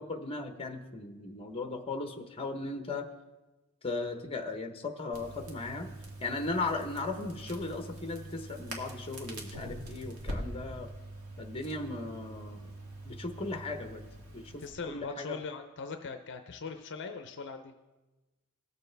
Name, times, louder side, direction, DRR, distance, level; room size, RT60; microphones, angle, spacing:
voice 1, 0.0-3.1 3.8-5.9 6.2-10.9 11.4-12.7 13.0-14.0 14.3-15.4, left 3 dB, 25° left, 6 dB, 0.8 m, -37 dB
Crackle, 5.1-14.7, right 1 dB, 75° right, 1.6 m, -44 dB
voice 2, 14.6-17.7, left 4 dB, 55° left, 7 dB, 0.5 m, -40 dB
18.5 x 6.9 x 3.3 m, 1.1 s
head